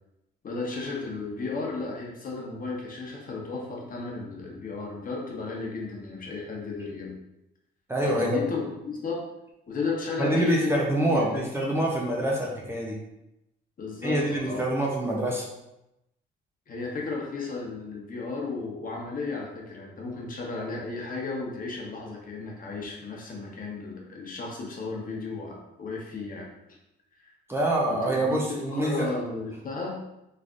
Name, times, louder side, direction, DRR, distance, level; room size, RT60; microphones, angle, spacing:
voice 1, 0.4-7.1 8.0-9.2 9.7-10.7 11.1-11.4 11.7-11.9 13.8-14.6 16.7-26.5 27.2-27.3 27.9-30.0, left 3 dB, 45° left, -2 dB, 1.0 m, -34 dB
voice 2, 7.9-8.4 10.2-13.0 14.0-15.5 27.5-29.1, right 1 dB, 10° right, -3 dB, 0.7 m, -26 dB
3.6 x 3.3 x 2.5 m, 0.89 s
cardioid pair, 90°, 20 cm